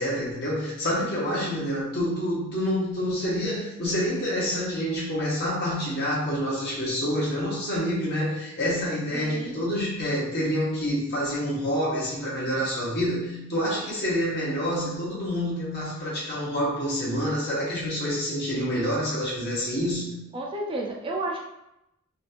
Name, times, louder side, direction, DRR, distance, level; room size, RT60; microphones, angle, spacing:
voice 1, 0.0-20.2, equal, 55° left, -6 dB, 1.4 m, -27 dB
voice 2, 9.1-9.7 20.3-21.4, right 2 dB, 25° right, -1 dB, 0.5 m, -32 dB
4.1 x 2.6 x 2.9 m, 0.86 s
head